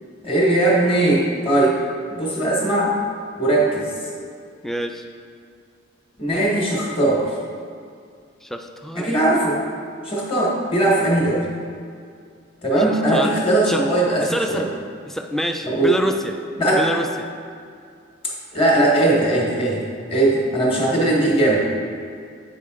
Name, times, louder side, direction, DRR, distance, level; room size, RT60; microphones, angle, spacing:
voice 1, 0.2-1.8 2.1-3.0 3.4-3.9 6.2-7.3 8.9-9.6 10.0-11.5 12.6-14.2 14.5-14.6 15.6-15.9 16.6-16.8 18.5-19.8 20.1-21.8, right 1 dB, 30° left, -3 dB, 1.4 m, -19 dB
voice 2, 4.6-5.0 8.4-9.2 12.8-13.4 13.6-13.8 14.2-14.7 15.1-16.3 16.7-17.3, equal, ahead, 5 dB, 0.3 m, -27 dB
8.5 x 4.9 x 3.7 m, 2.3 s
head